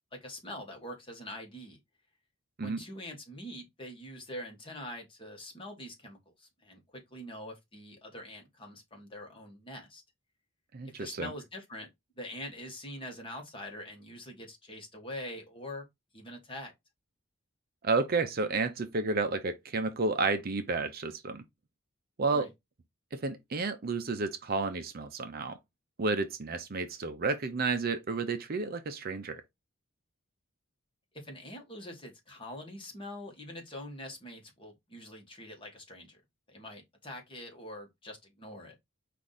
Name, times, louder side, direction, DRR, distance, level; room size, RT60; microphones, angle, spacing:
voice 1, 0.1-1.8 2.6-10.0 10.8-11.9 12.2-15.8 16.1-16.7 22.3-22.5 31.1-36.2 36.5-38.7, left 1 dB, 25° left, 1.4 m, -44 dB
voice 2, 10.7-11.3 17.8-21.4 22.2-22.5 23.1-25.6 26.0-29.4, right 3 dB, 45° right, 0.5 m, -31 dB
4.7 x 2.5 x 4.0 m
head